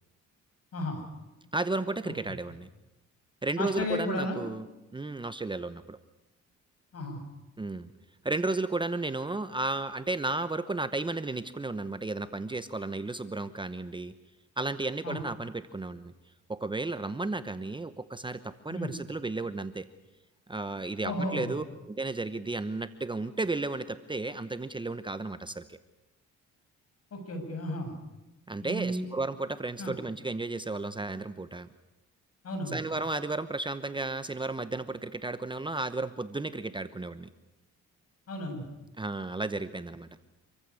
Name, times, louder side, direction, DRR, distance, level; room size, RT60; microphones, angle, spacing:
voice 1, 0.7-1.0 2.0-2.1 3.6-4.4 6.9-7.2 15.0-15.2 18.7-18.9 21.0-21.6 27.1-28.0 28.6-29.1 29.8-29.9 32.4-32.8 38.3-38.7, left 1 dB, 55° left, 4 dB, 7.3 m, -33 dB
voice 2, 1.5-2.7 3.4-4.7 4.9-6.0 7.6-7.9 8.2-14.1 14.6-16.1 16.5-19.9 20.5-25.8 28.5-31.7 32.7-37.3 39.0-40.1, right 2 dB, 15° right, 12 dB, 0.9 m, -33 dB
26.5 x 15.0 x 9.7 m, 1.0 s
cardioid pair, 90°, 30 cm